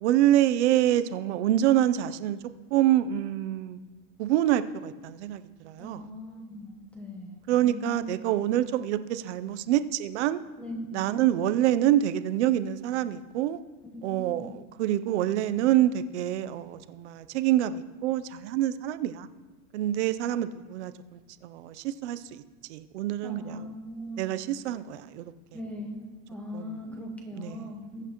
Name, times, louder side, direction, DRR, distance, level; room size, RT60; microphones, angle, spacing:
voice 1, 0.0-2.4 2.7-3.8 4.2-6.1 7.5-10.4 10.9-13.6 14.0-19.3 19.7-22.4 22.7-23.7 24.2-25.3 26.5-27.0 27.3-27.6, right 12 dB, 50° right, 12 dB, 0.5 m, -26 dB
voice 2, 5.8-8.1 10.6-11.2 13.9-14.6 23.2-24.3 25.5-26.0 26.3-28.0, left 1 dB, 5° left, 2 dB, 0.9 m, -40 dB
20.5 x 7.9 x 3.0 m, 1.3 s
supercardioid pair, 175°, 46 cm